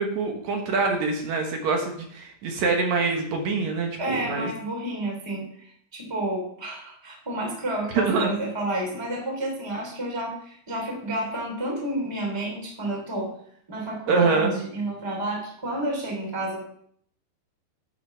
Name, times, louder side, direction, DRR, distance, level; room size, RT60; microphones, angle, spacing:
voice 1, 0.0-4.5 7.9-8.3 14.1-14.6, right 4 dB, 70° right, 2 dB, 1.7 m, -25 dB
voice 2, 4.0-5.5 5.9-13.3 13.7-16.6, right 1 dB, 10° right, -1 dB, 2.0 m, -30 dB
11.0 x 5.8 x 5.8 m, 0.65 s
omnidirectional pair, 5.1 m